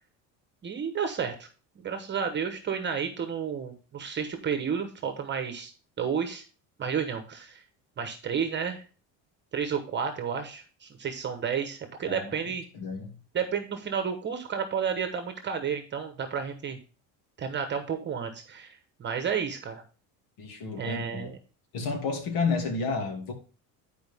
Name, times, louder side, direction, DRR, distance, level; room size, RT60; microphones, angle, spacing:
voice 1, 0.6-1.5 1.8-5.7 6.0-6.4 6.8-7.6 8.0-8.8 9.5-12.6 13.3-16.8 17.4-19.8 20.8-21.3, right 7 dB, 30° right, 7 dB, 1.1 m, -31 dB
voice 2, 12.7-13.2 20.4-21.3 21.7-23.3, left 4 dB, 65° left, 3 dB, 2.6 m, -31 dB
10.5 x 4.9 x 3.5 m, 0.36 s
cardioid pair, 140°, 36 cm